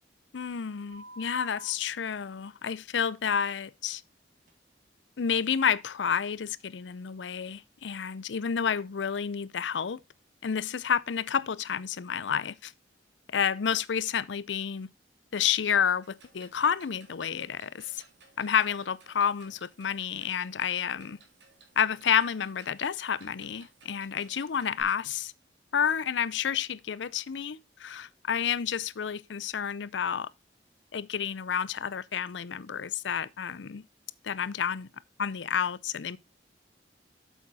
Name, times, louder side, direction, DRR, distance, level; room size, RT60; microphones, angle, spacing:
voice 1, 0.3-4.0 5.2-10.0 10.4-12.7 13.3-14.9 15.3-18.0 18.4-21.2 21.8-25.3 25.7-30.3 30.9-33.8 34.2-34.9 35.2-36.2, left 7 dB, 80° left, 0.5 m, -30 dB
sound 1, 0.9-1.7 4.5-4.6, right 1 dB, 45° right, 2.5 m, -47 dB
Clock, 16.0-24.8, right 4 dB, 75° right, 2.8 m, -59 dB
8.3 x 7.1 x 4.0 m
head